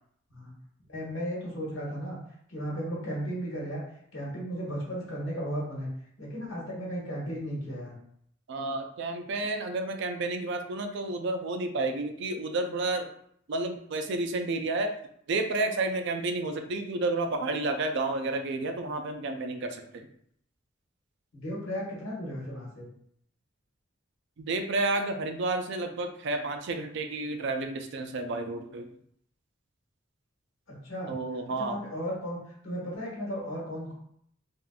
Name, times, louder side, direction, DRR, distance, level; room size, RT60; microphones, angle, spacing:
voice 1, 0.9-2.2 2.5-3.8 4.1-5.9 6.2-8.0 21.3-22.9 30.7-31.1 31.6-33.9, equal, 80° left, -3 dB, 1.2 m, -35 dB
voice 2, 8.5-13.1 13.5-14.9 15.3-20.1 24.4-28.9 31.1-31.8, right 2 dB, 65° right, 5 dB, 0.4 m, -31 dB
3.5 x 2.5 x 2.3 m, 0.67 s
head